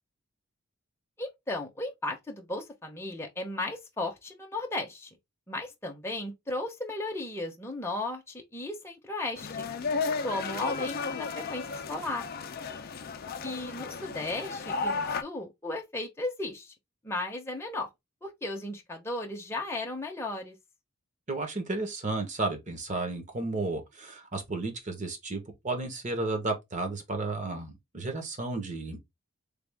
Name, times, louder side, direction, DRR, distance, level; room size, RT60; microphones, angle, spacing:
voice 1, 1.2-5.1 5.5-9.7 10.2-11.6 11.9-12.2 13.4-16.7 17.0-17.9 18.2-20.6, left 2 dB, 10° left, 0.7 m, -35 dB
sound 1, 9.4-15.2, left 4 dB, 45° left, 0.4 m, -33 dB
voice 2, 21.3-29.0, right 2 dB, 35° right, 0.9 m, -33 dB
3.4 x 2.4 x 3.4 m
head